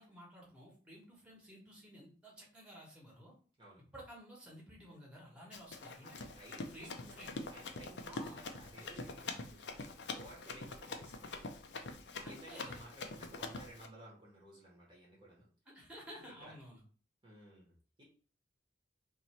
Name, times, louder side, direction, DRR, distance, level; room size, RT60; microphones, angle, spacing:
voice 1, 0.0-3.3 3.9-6.3 6.7-7.4 8.1-8.5 12.2-12.8 15.7-16.8, equal, 5° right, -3 dB, 1.1 m, -53 dB
Run, 5.5-13.9, left 3 dB, 70° left, 0.5 m, -45 dB
voice 2, 6.0-11.5 12.3-15.5 16.4-16.5 17.2-18.0, right 1 dB, 25° right, -4 dB, 1.0 m, -56 dB
3.0 x 2.7 x 4.2 m, 0.42 s
head